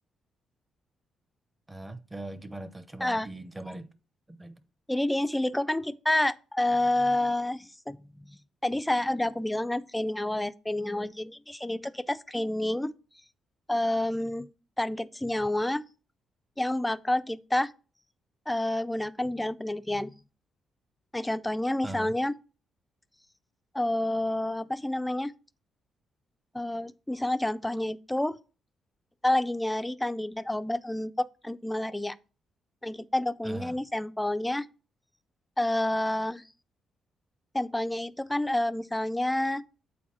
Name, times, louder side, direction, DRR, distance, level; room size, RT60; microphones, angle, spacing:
voice 1, 1.7-3.9 4.3-4.6 21.8-22.1 33.4-33.8, right 2 dB, 15° right, 0.8 m, -41 dB
voice 2, 4.9-12.9 13.7-14.5 14.8-15.8 16.6-17.7 18.5-20.1 21.1-22.3 23.7-25.3 26.5-28.4 29.2-32.2 32.8-34.7 35.6-36.4 37.5-39.6, left 1 dB, 10° left, 0.4 m, -29 dB
8.6 x 4.1 x 4.3 m
cardioid pair, 85°, 0 cm